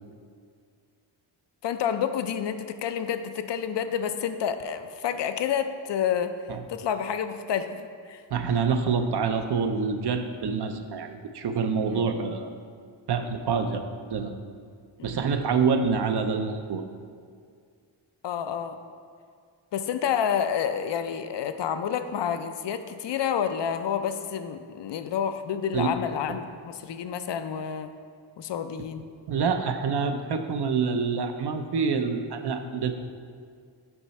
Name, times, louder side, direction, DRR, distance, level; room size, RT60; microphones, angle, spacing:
voice 1, 1.6-6.3 6.7-8.2 11.9-12.3 15.0-15.1 18.2-18.8 19.7-28.0 28.4-29.1, left 8 dB, 60° left, 10 dB, 0.5 m, -29 dB
voice 2, 8.3-12.5 13.1-13.8 14.1-14.3 15.0-16.8 25.7-26.0 29.3-32.9, right 5 dB, 55° right, 7 dB, 0.6 m, -26 dB
7.1 x 5.6 x 4.1 m, 2.1 s
wide cardioid pair, 135°, 48 cm